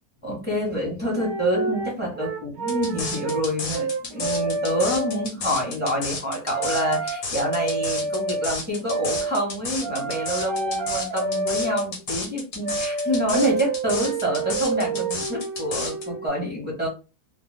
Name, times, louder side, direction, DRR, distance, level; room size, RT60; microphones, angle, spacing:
voice 1, 0.2-16.9, equal, 5° right, -3 dB, 1.1 m, -27 dB
sound 1, 0.7-0.8 1.1-3.5 3.7-5.3 6.5-8.5 8.9-9.3 9.8-11.9 12.6-16.3, right 3 dB, 60° right, 0.7 m, -28 dB
sound 2, 2.7-16.0, left 3 dB, 65° left, 1.3 m, -32 dB
2.6 x 2.2 x 3.4 m, 0.30 s
omnidirectional pair, 1.6 m